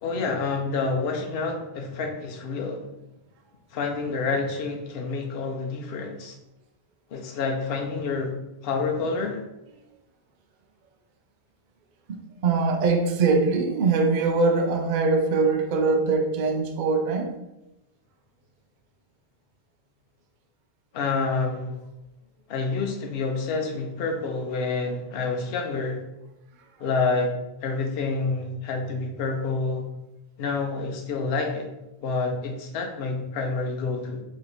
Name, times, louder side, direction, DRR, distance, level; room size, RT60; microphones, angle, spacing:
voice 1, 0.0-2.9 3.7-6.3 7.1-8.4 8.6-9.4 20.9-21.8 22.5-26.0 26.8-27.3 27.6-29.9 30.4-31.7 32.0-34.2, left 4 dB, 65° left, 1 dB, 0.8 m, -28 dB
voice 2, 12.4-17.3, right 4 dB, 60° right, 4 dB, 0.6 m, -22 dB
3.0 x 2.8 x 3.9 m, 0.94 s
omnidirectional pair, 1.1 m